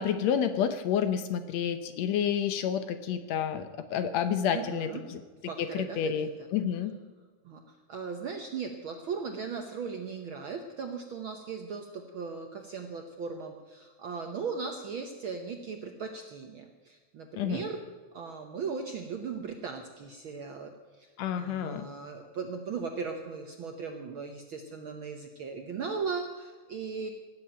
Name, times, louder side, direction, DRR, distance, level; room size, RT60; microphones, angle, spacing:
voice 1, 0.0-5.2 5.6-6.9 17.4-17.6 21.2-21.9, left 8 dB, 70° left, 10 dB, 1.9 m, -29 dB
voice 2, 4.5-5.1 5.4-6.1 7.4-17.8 18.1-27.1, right 5 dB, 65° right, 5 dB, 1.3 m, -38 dB
17.0 x 7.9 x 8.8 m, 1.4 s
omnidirectional pair, 3.4 m